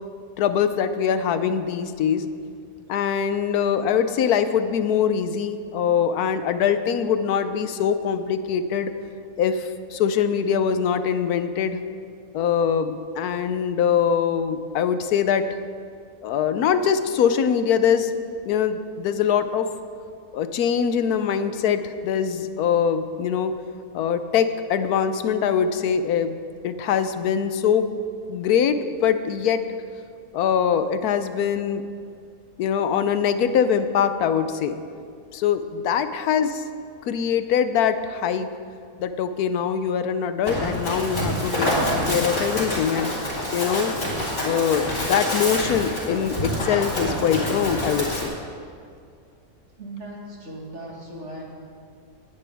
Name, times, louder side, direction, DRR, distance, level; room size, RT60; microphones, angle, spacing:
voice 1, 0.4-2.3 2.9-8.9 9.4-11.8 12.3-15.5 16.2-18.1 18.5-19.7 20.3-23.5 23.9-26.4 26.6-27.9 28.3-29.6 30.3-31.8 32.6-34.8 35.3-36.6 37.0-38.5 39.0-41.7 42.1-43.1 43.5-44.0 44.4-48.4, left 7 dB, 85° left, 11 dB, 1.2 m, -23 dB
Run, 40.4-48.3, left 1 dB, 60° left, 3.7 m, -26 dB
voice 2, 49.8-51.5, right 1 dB, 50° right, -2 dB, 2.3 m, -37 dB
19.0 x 10.0 x 3.5 m, 2.3 s
omnidirectional pair, 1.6 m